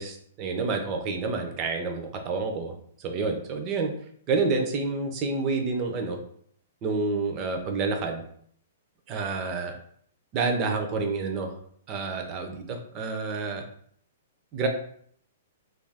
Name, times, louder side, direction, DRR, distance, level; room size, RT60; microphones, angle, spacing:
voice 1, 0.0-3.9 4.3-6.2 6.8-8.2 9.1-9.8 10.3-11.6 11.9-13.6 14.5-14.7, right 4 dB, 25° right, 4 dB, 0.4 m, -29 dB
2.3 x 2.3 x 3.3 m, 0.62 s
hypercardioid pair, 165°, 0 cm